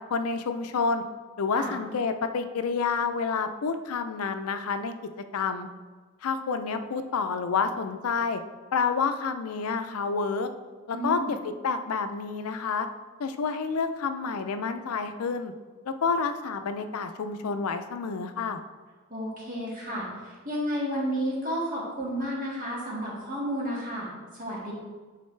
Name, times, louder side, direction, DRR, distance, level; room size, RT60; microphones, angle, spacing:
voice 1, 0.1-1.0 1.4-5.0 5.3-5.7 6.2-8.4 8.7-10.5 10.9-12.9 13.2-15.5 15.9-18.6, left 5 dB, 85° left, 9 dB, 0.4 m, -29 dB
voice 2, 10.9-11.3 19.1-24.7, equal, 40° right, -5 dB, 1.8 m, -32 dB
8.5 x 4.0 x 3.2 m, 1.4 s
head